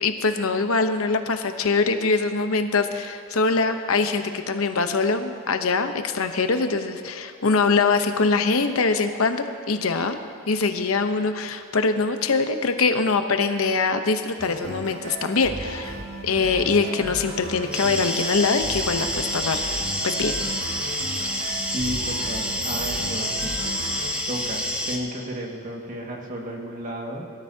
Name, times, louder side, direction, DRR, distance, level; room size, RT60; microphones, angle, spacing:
voice 1, 0.0-10.2 10.5-15.9 16.2-19.6 20.0-20.3, left 4 dB, 85° left, 7 dB, 0.9 m, -23 dB
sound 1, 14.4-24.1, right 1 dB, 55° right, 2.3 m, -36 dB
sound 2, 17.7-25.0, equal, 5° right, 1.1 m, -28 dB
voice 2, 21.7-23.6 24.3-27.2, equal, 40° right, 0 dB, 1.9 m, -33 dB
22.0 x 13.0 x 2.8 m, 2.6 s
head